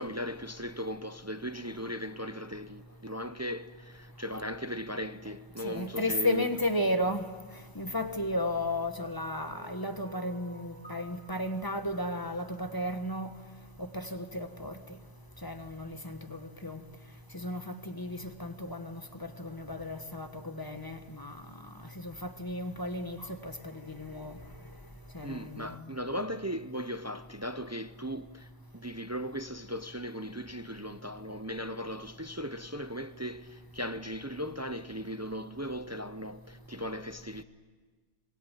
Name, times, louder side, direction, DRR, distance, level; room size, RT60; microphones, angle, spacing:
voice 1, 0.0-6.5 25.2-28.5 28.7-37.4, equal, 20° right, 0.5 m, -38 dB
voice 2, 5.6-7.2 7.7-13.3 13.8-14.8 15.4-16.8 17.3-21.4 22.0-24.4 25.1-25.7, left 1 dB, 20° left, 1.4 m, -34 dB
sound 1, 9.2-13.6, right 1 dB, 85° left, 6.6 m, -54 dB
25.5 x 21.5 x 9.1 m
omnidirectional pair, 1.2 m